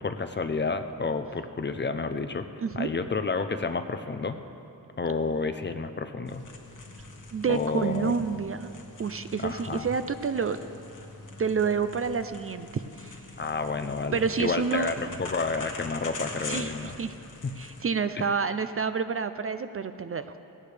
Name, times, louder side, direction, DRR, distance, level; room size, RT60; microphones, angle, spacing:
voice 1, 0.0-2.5 2.8-4.4 5.0-6.5 7.5-8.2 9.4-9.9 13.4-16.9 17.4-17.5 18.2-18.3, left 4 dB, 30° left, 9 dB, 0.5 m, -30 dB
sound 1, 6.3-17.8, left 3 dB, 55° left, 1.4 m, -43 dB
voice 2, 7.3-8.7 9.0-10.6 11.4-13.2 14.1-14.9 16.5-16.7 17.0-17.1 17.6-20.4, right 5 dB, 40° right, 10 dB, 0.4 m, -28 dB
17.5 x 17.0 x 3.3 m, 2.8 s
wide cardioid pair, 170°, 36 cm